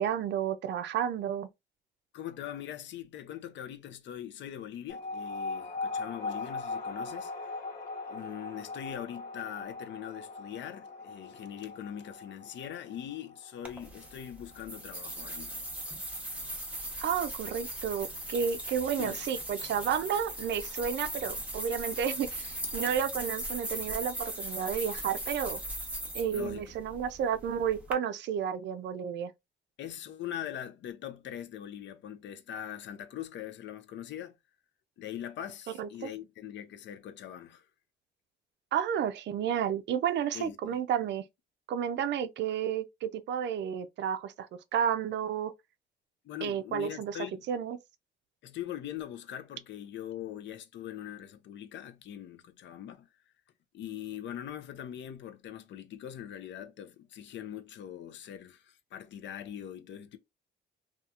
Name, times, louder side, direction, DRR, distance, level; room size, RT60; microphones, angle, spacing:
voice 1, 0.0-1.5 17.0-25.6 26.1-29.3 35.8-36.1 38.7-41.2 41.7-44.5 44.7-45.5 46.4-47.2 47.5-47.8, right 8 dB, 65° right, 0.4 m, -31 dB
voice 2, 2.1-7.5 8.1-15.6 19.0-19.2 26.3-26.6 29.8-34.4 35.0-37.7 40.3-40.8 46.2-47.5 48.4-53.1 53.7-60.2, left 10 dB, 65° left, 0.5 m, -42 dB
sound 1, 4.9-15.8, left 3 dB, 45° left, 1.0 m, -40 dB
sound 2, 13.6-27.9, right 1 dB, 5° right, 0.8 m, -39 dB
2.7 x 2.3 x 2.3 m
cardioid pair, 90°, 20 cm